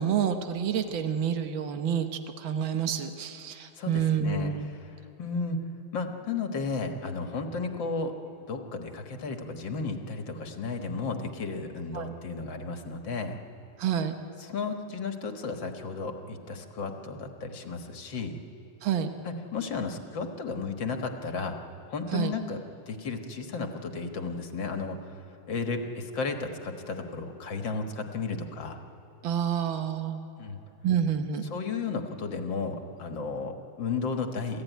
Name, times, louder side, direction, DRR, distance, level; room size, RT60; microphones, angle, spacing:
voice 1, 0.0-2.1 2.4-4.7 11.9-12.1 13.8-14.2 18.8-19.1 22.1-22.4 29.2-30.2 30.8-31.5, right 8 dB, 80° right, 7 dB, 1.8 m, -28 dB
voice 2, 3.8-4.5 5.2-5.6 5.9-8.1 8.5-13.4 14.4-18.4 19.3-21.6 21.9-25.2 25.5-28.8 30.4-30.6 31.5-34.6, left 4 dB, 70° left, 5 dB, 2.2 m, -33 dB
27.0 x 15.0 x 9.3 m, 2.8 s
omnidirectional pair, 2.1 m